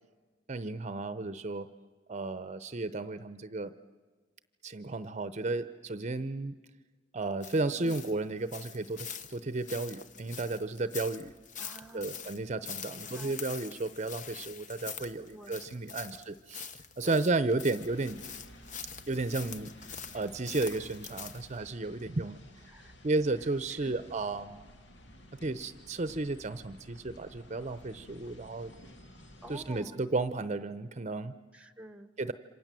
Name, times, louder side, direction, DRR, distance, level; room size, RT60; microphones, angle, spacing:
voice 1, 0.5-1.7 2.1-3.7 4.6-6.5 7.1-11.3 11.9-16.7 17.0-18.2 19.1-19.7 20.1-22.4 23.0-24.6 25.4-28.7 29.5-31.3 32.2-32.3, right 2 dB, 40° right, 13 dB, 0.7 m, -33 dB
sound 1, 7.4-21.6, left 7 dB, 45° left, 1.0 m, -45 dB
voice 2, 7.7-8.2 11.6-12.1 12.9-13.4 15.3-15.6 17.0-17.3 22.6-23.0 23.7-24.0 29.4-30.1 31.5-32.1, right 1 dB, 5° right, 12 dB, 1.0 m, -49 dB
sound 2, 17.8-29.8, equal, 75° left, 2.2 m, -53 dB
28.0 x 26.0 x 7.6 m, 1.4 s
head